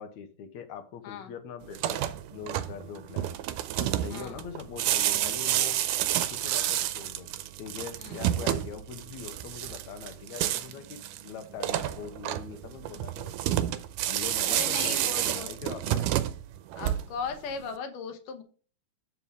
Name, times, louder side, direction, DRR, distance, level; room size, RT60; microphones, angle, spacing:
voice 1, 0.0-2.0 2.3-3.3 3.8-5.8 6.3-7.3 7.6-13.3 14.1-16.1, left 7 dB, 70° left, 2.1 m, -42 dB
sound 1, 1.7-17.3, right 12 dB, 85° right, 2.1 m, -30 dB
voice 2, 14.5-15.5 16.7-18.4, left 5 dB, 85° left, 2.8 m, -37 dB
7.3 x 7.0 x 3.5 m
omnidirectional pair, 3.6 m